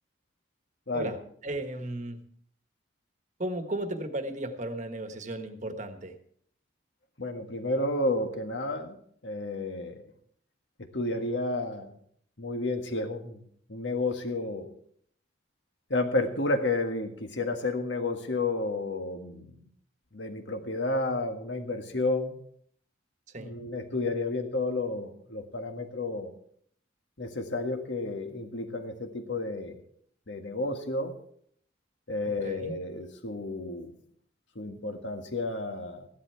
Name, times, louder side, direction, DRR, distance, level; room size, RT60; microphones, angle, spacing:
voice 1, 1.4-2.2 3.4-6.1 23.3-23.5 32.2-32.8, right 1 dB, 40° right, 7 dB, 1.3 m, -35 dB
voice 2, 7.2-9.0 9.2-10.0 10.8-11.9 12.4-14.7 15.9-19.5 20.1-22.4 23.4-26.3 27.2-29.8 30.3-31.2 32.1-33.9 34.5-36.1, left 2 dB, 65° left, 5 dB, 1.7 m, -31 dB
15.0 x 11.5 x 4.6 m, 0.63 s
head